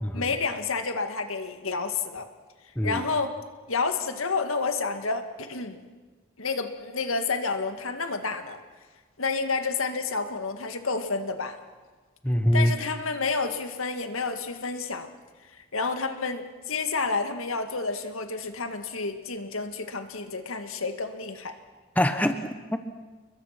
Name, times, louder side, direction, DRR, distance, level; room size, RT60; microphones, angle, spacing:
voice 1, 0.1-2.3 2.8-3.3 3.7-5.9 6.4-8.6 9.2-11.6 12.5-15.1 15.5-21.5, left 4 dB, 85° left, 2.0 m, -30 dB
voice 2, 12.2-12.7 22.0-22.8, equal, 5° left, 1.1 m, -24 dB
29.0 x 22.0 x 6.0 m
head